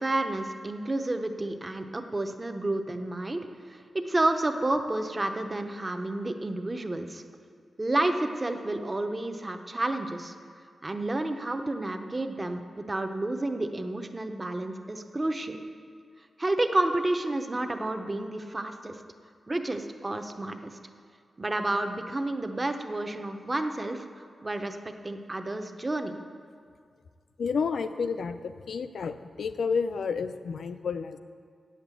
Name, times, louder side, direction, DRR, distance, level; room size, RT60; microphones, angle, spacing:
voice 1, 0.0-7.2 7.8-10.3 10.8-15.6 16.4-19.0 19.5-20.8 21.4-26.1, right 2 dB, 25° right, 7 dB, 0.7 m, -30 dB
voice 2, 27.4-28.4 28.7-31.2, left 5 dB, 80° left, 11 dB, 0.5 m, -30 dB
8.8 x 7.3 x 8.2 m, 2.1 s
wide cardioid pair, 120°, 0 cm